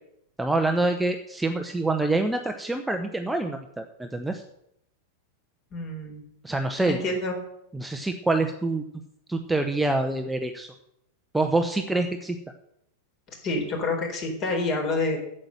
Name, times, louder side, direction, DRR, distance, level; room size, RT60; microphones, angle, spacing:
voice 1, 0.4-4.4 6.4-7.0 7.7-8.8 9.3-10.7 11.3-12.4, right 2 dB, 5° right, 5 dB, 0.9 m, -26 dB
voice 2, 5.7-6.2 6.9-7.4 13.4-15.2, left 2 dB, 35° left, 3 dB, 4.0 m, -27 dB
9.0 x 7.6 x 8.9 m, 0.77 s
figure-of-eight pair, 90°, 0 cm